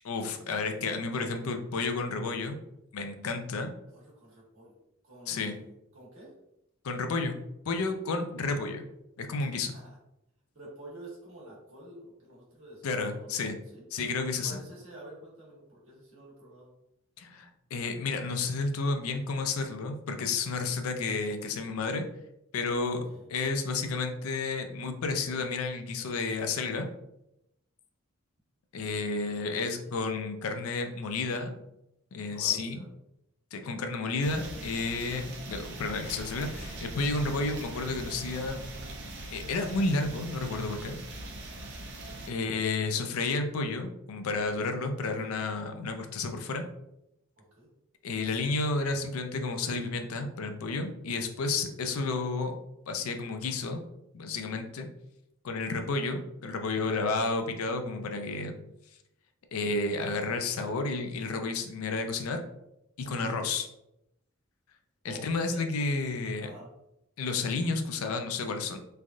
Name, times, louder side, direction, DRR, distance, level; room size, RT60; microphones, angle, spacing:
voice 1, 0.0-2.6 2.9-3.7 5.3-5.5 6.8-7.4 7.7-8.8 9.2-9.7 12.8-13.6 13.9-14.6 17.2-22.0 22.5-23.0 23.3-26.9 28.7-31.5 32.1-32.9 33.5-38.7 39.3-41.0 42.3-46.6 48.0-52.6 52.9-53.8 54.1-54.9 55.4-58.5 59.5-62.4 63.0-63.7 65.0-66.5 67.2-68.8, left 3 dB, 90° left, 6 dB, 0.4 m, -31 dB
voice 2, 3.9-4.8 5.0-6.3 9.7-10.0 10.5-13.8 14.4-16.7 23.1-23.3 29.5-29.9 32.3-32.8 41.9-42.5 45.2-45.4 47.4-47.7 56.7-57.0 63.0-63.3 65.0-65.6 66.4-66.7, right 1 dB, 70° right, -5 dB, 1.3 m, -49 dB
sound 1, 34.2-42.3, right 1 dB, 55° right, 0.5 m, -41 dB
3.3 x 2.3 x 2.5 m, 0.84 s
head